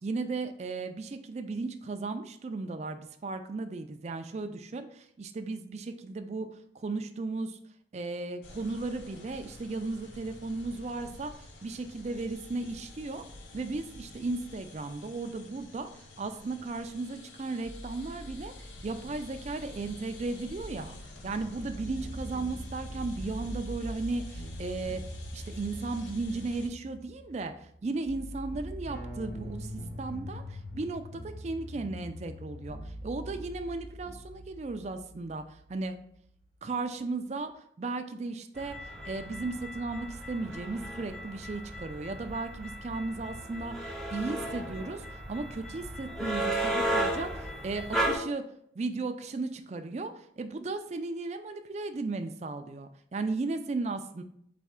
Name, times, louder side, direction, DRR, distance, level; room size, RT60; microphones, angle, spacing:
voice 1, 0.0-6.5 6.7-7.6 7.9-13.2 13.5-25.0 25.3-29.7 30.0-36.0 36.6-48.4 48.8-54.2, right 3 dB, 35° right, 8 dB, 0.4 m, -35 dB
sound 1, 8.4-26.7, left 2 dB, 85° left, 0.7 m, -48 dB
sound 2, 17.6-19.0 21.2-37.2, equal, 50° left, 1.2 m, -43 dB
sound 3, 38.6-48.2, right 1 dB, 5° left, 0.7 m, -34 dB
4.2 x 3.4 x 3.6 m, 0.68 s
head